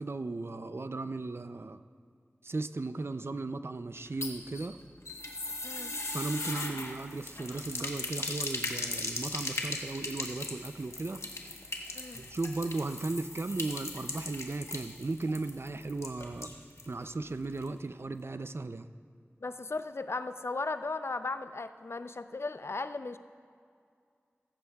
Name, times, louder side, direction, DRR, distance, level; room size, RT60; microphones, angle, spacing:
voice 1, 0.0-1.8 2.4-4.8 6.1-11.2 12.1-16.5 16.9-18.9, right 3 dB, 60° right, 11 dB, 0.4 m, -36 dB
sound 1, 4.0-16.9 17.2-17.3 17.6-17.7, left 2 dB, 80° left, 1.1 m, -39 dB
voice 2, 19.4-23.2, left 3 dB, 65° left, 11 dB, 0.4 m, -36 dB
15.0 x 14.0 x 2.3 m, 2.3 s
wide cardioid pair, 45°, 5 cm